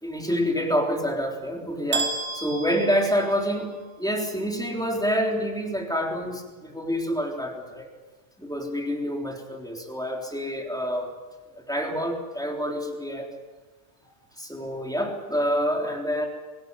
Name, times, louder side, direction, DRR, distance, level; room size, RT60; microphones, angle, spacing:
voice 1, 0.0-3.7 4.0-7.9 8.4-11.1 11.5-13.3 14.4-16.3, equal, 5° left, 1 dB, 3.6 m, -27 dB
sound 1, 1.9-3.9, right 4 dB, 75° right, 2.4 m, -32 dB
24.0 x 16.5 x 9.7 m, 1.3 s
omnidirectional pair, 1.2 m